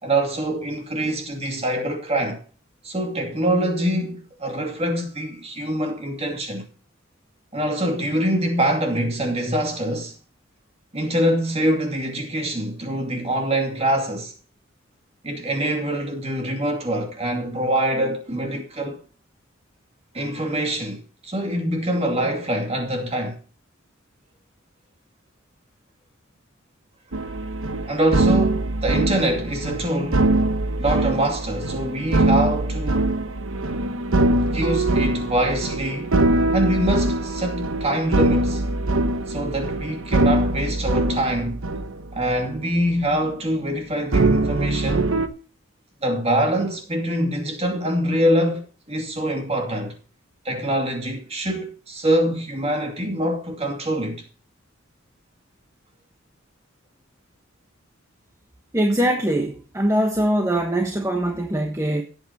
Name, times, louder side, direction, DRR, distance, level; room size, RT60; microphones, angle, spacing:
voice 1, 0.0-2.4 2.8-6.7 7.5-10.1 10.9-14.3 15.2-19.0 20.1-23.4 27.8-30.3 30.8-33.1 34.5-36.1 36.5-38.6 39.3-41.6 42.1-45.1 46.0-49.9 50.4-54.2, right 1 dB, 30° right, 2.5 m, -24 dB
sound 1, 27.1-42.7 42.9-43.3 44.1-45.3, right 2 dB, 85° right, 1.1 m, -22 dB
sound 2, 30.2-38.6, right 2 dB, 60° right, 7.2 m, -46 dB
voice 2, 58.7-62.0, right 1 dB, 15° right, 1.2 m, -22 dB
17.0 x 8.3 x 2.9 m
head